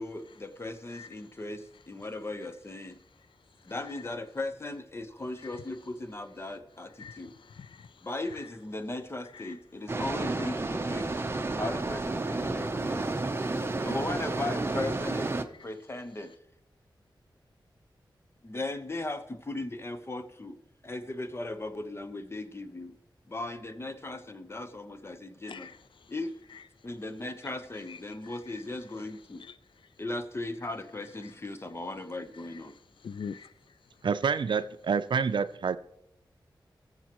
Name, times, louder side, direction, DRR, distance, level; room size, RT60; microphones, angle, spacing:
voice 1, 0.0-3.0 3.6-7.3 8.0-11.1 11.6-13.2 13.8-15.3 15.6-16.3 18.4-20.6 20.8-23.0 23.3-25.7 26.1-26.3 26.8-29.4 30.0-32.7, left 2 dB, 30° left, 0.9 m, -37 dB
voice 2, 7.0-8.1 9.3-9.5 13.4-13.5 25.4-25.8 27.9-28.6 29.4-29.6 31.2-31.3 32.5-32.6 33.0-33.5, left 6 dB, 85° left, 0.4 m, -44 dB
sound 1, 9.9-15.4, right 2 dB, 30° right, 0.7 m, -31 dB
voice 3, 34.0-35.8, right 6 dB, 70° right, 0.5 m, -27 dB
20.0 x 7.3 x 3.0 m
wide cardioid pair, 90°, 8 cm